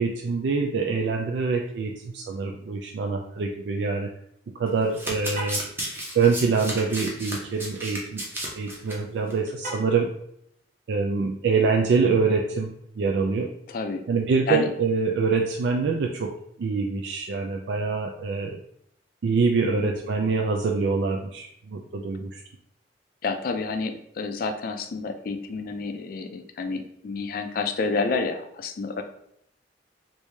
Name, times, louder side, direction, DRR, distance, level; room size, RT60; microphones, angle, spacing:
voice 1, 0.0-4.1 4.6-5.6 6.1-8.2 8.6-10.1 10.9-12.7 13.0-13.5 14.1-16.3 16.6-18.6 19.2-22.4, right 4 dB, 75° right, 1 dB, 0.3 m, -25 dB
Domestic sounds home sounds, 4.7-9.0 9.3-9.5 9.7-9.8, right 1 dB, 15° right, 0.7 m, -33 dB
Car, 5.2-5.7 9.6-10.1, right 1 dB, 45° right, 1.2 m, -36 dB
voice 2, 13.7-14.0 14.5-14.7 19.6-19.9 23.2-29.0, left 4 dB, 55° left, 7 dB, 0.3 m, -29 dB
3.1 x 2.7 x 3.3 m, 0.73 s
head